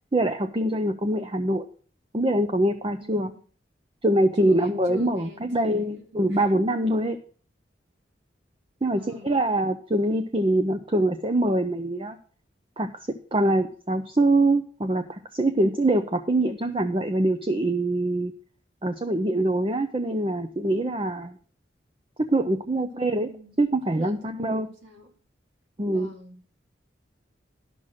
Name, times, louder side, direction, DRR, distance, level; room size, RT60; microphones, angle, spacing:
voice 1, 0.1-1.7 2.1-3.3 4.0-7.2 8.8-12.2 12.8-18.3 18.8-21.4 22.2-23.3 23.6-24.7 25.8-26.1, right 1 dB, 30° right, 8 dB, 0.6 m, -24 dB
voice 2, 3.0-3.4 4.3-6.5 8.9-9.3 22.9-25.1 25.9-26.4, right 1 dB, 80° right, 2 dB, 2.5 m, -44 dB
11.5 x 5.9 x 6.4 m, 0.43 s
head